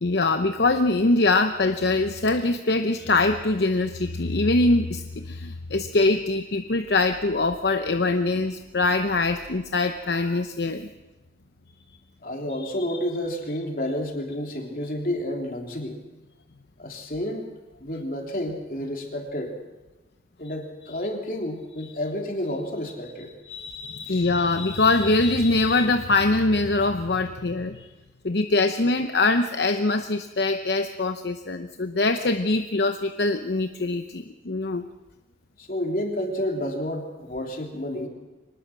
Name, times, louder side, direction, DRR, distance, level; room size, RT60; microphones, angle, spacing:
voice 1, 0.0-10.9 12.6-12.7 23.5-27.9 28.2-34.8, left 2 dB, 70° left, 7 dB, 0.9 m, -23 dB
voice 2, 12.2-16.0 16.8-17.5 17.8-19.5 20.4-23.3 24.1-24.2 35.6-38.1, left 1 dB, 50° left, 1 dB, 3.5 m, -30 dB
24.0 x 19.5 x 6.1 m, 1.1 s
head